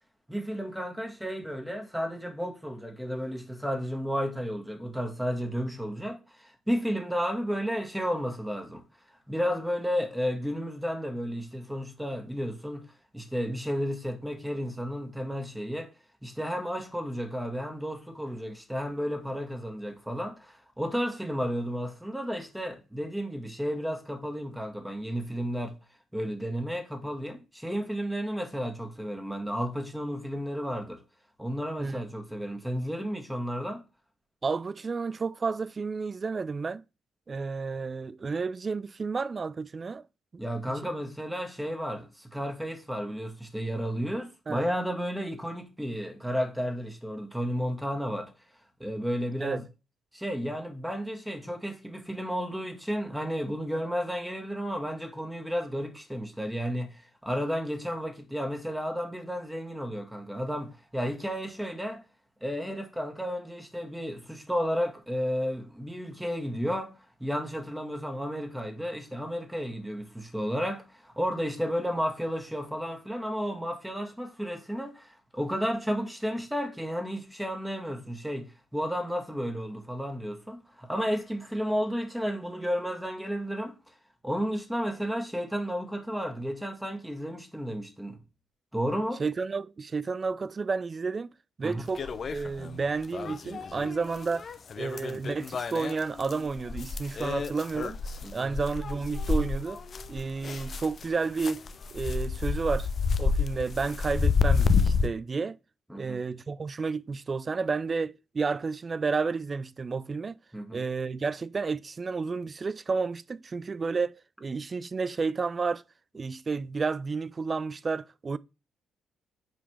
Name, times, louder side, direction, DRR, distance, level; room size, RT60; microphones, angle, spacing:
voice 1, 0.3-8.8 9.3-12.9 13.1-15.9 16.2-25.8 26.1-31.0 31.4-33.8 40.4-48.3 48.8-49.7 50.1-62.0 62.4-66.9 67.2-83.8 84.2-88.2 88.7-89.2 91.6-91.8 98.2-98.6 105.9-106.2 110.5-110.9, equal, 5° right, 1.7 m, -32 dB
voice 2, 34.4-36.8 37.3-40.0 40.7-40.8 44.5-44.7 49.4-49.6 89.2-91.3 91.6-94.5 94.8-98.0 98.3-99.8 100.1-101.7 101.9-102.9 103.2-105.6 105.9-110.4 110.7-115.8 116.1-118.4, right 4 dB, 35° right, 0.4 m, -31 dB
sound 1, 92.0-92.8 93.1-101.1 101.4-105.1, left 5 dB, 45° left, 0.6 m, -29 dB
7.4 x 5.0 x 3.4 m
figure-of-eight pair, 40°, 0 cm